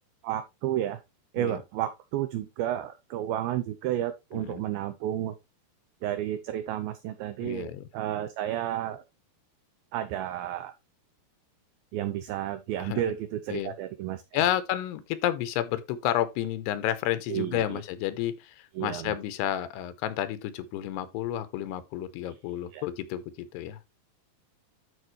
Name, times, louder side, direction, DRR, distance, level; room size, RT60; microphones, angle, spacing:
voice 1, 0.2-1.0 1.3-5.3 6.0-9.0 9.9-10.7 11.9-14.2 17.3-17.8 18.8-19.2 22.7-22.8, right 12 dB, 80° right, 2.2 m, -31 dB
voice 2, 4.3-4.6 7.4-7.9 12.8-13.1 13.5-13.7 14.3-23.9, left 12 dB, 90° left, 2.9 m, -31 dB
12.5 x 4.9 x 3.1 m
omnidirectional pair, 4.8 m